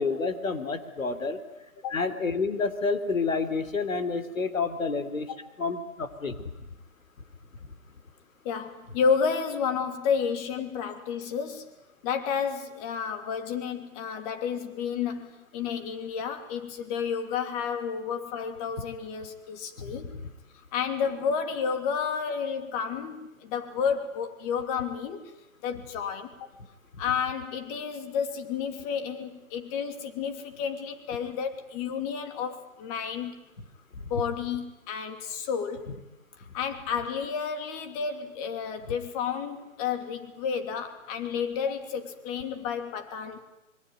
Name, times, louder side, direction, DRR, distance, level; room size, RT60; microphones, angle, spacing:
voice 1, 0.0-1.4 1.9-5.3 5.6-6.4 19.8-19.9 20.2-20.3, left 4 dB, 75° left, 9 dB, 3.5 m, -29 dB
voice 2, 8.4-11.7 12.0-15.3 15.5-20.1 20.7-25.2 25.6-26.5 27.0-33.4 34.1-35.9 36.5-43.4, left 6 dB, 25° left, 7 dB, 3.0 m, -31 dB
26.0 x 22.5 x 9.4 m, 0.93 s
figure-of-eight pair, 140°, 40 cm